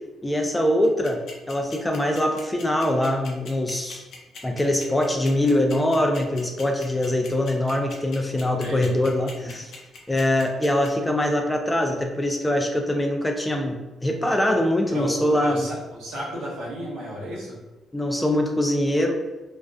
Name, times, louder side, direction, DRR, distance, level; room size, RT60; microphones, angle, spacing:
voice 1, 0.2-1.2 1.5-4.0 4.4-9.7 10.1-15.7 17.9-19.2, left 1 dB, 15° left, 3 dB, 0.4 m, -23 dB
sound 1, 0.8-10.9, left 6 dB, 70° left, 0.6 m, -41 dB
voice 2, 8.6-8.9 9.4-9.6 14.9-17.6, right 1 dB, 85° right, -5 dB, 0.9 m, -33 dB
2.4 x 2.3 x 2.3 m, 1.1 s
cardioid pair, 90°, 0 cm